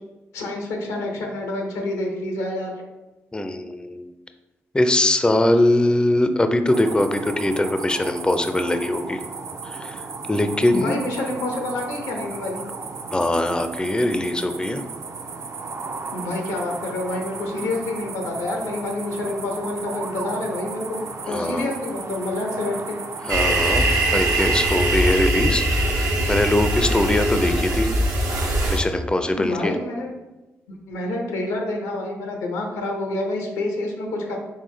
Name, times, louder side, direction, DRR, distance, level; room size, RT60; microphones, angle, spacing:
voice 1, 0.3-2.7 10.7-12.6 16.1-23.0 29.4-30.1 30.7-34.4, left 2 dB, 90° left, 2 dB, 0.8 m, -28 dB
voice 2, 3.3-4.0 4.7-9.2 9.6-11.0 13.1-14.8 21.2-21.7 23.3-27.9 28.7-29.7, left 1 dB, 15° left, 8 dB, 0.4 m, -22 dB
sound 1, 6.7-25.2, right 4 dB, 55° right, 0.5 m, -35 dB
sound 2, 23.3-28.8, right 1 dB, 75° right, 0.8 m, -21 dB
3.8 x 3.6 x 3.2 m, 1.1 s
supercardioid pair, 45°, 6 cm